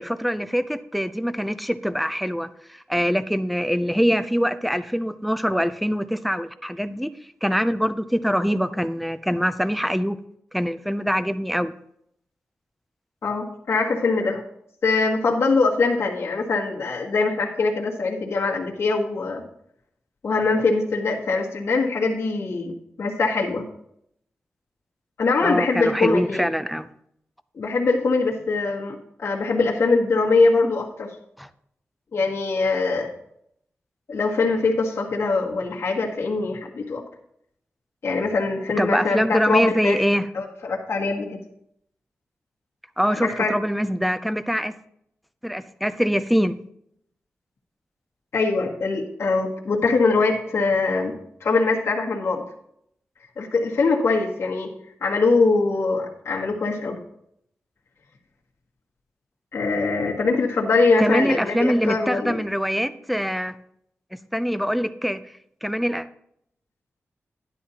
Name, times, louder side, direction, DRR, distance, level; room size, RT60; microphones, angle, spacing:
voice 1, 0.0-7.1 7.4-10.2 10.5-11.7 25.4-26.9 31.4-31.5 38.8-40.3 43.0-44.7 45.4-46.5 60.1-60.2 61.0-63.5 64.3-65.2 65.6-66.1, equal, ahead, 12 dB, 0.5 m, -24 dB
voice 2, 13.2-14.4 14.8-19.4 20.2-23.6 25.2-26.5 27.5-31.1 32.1-33.1 34.1-37.0 38.0-40.0 40.3-41.4 43.2-43.5 48.3-51.1 51.4-52.4 53.4-54.7 55.0-57.0 59.5-62.4, left 3 dB, 65° left, -3 dB, 1.8 m, -22 dB
12.0 x 10.5 x 2.9 m, 0.72 s
wide cardioid pair, 140°, 5 cm